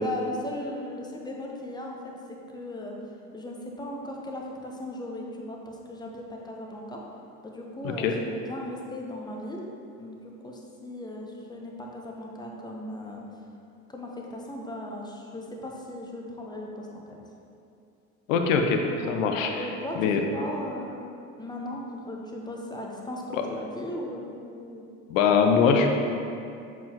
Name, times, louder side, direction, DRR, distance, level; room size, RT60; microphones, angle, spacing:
voice 1, 0.0-2.0 2.5-2.9 3.3-7.0 7.4-9.6 10.0-10.2 10.4-13.2 13.9-17.2 19.0-21.0 21.4-24.9, left 1 dB, 10° left, -1 dB, 0.9 m, -37 dB
voice 2, 18.3-18.8 19.1-19.5 20.0-20.2 23.3-23.4 25.1-25.9, left 6 dB, 70° left, 4 dB, 0.7 m, -22 dB
7.2 x 4.6 x 2.9 m, 2.5 s
figure-of-eight pair, 60°, 41 cm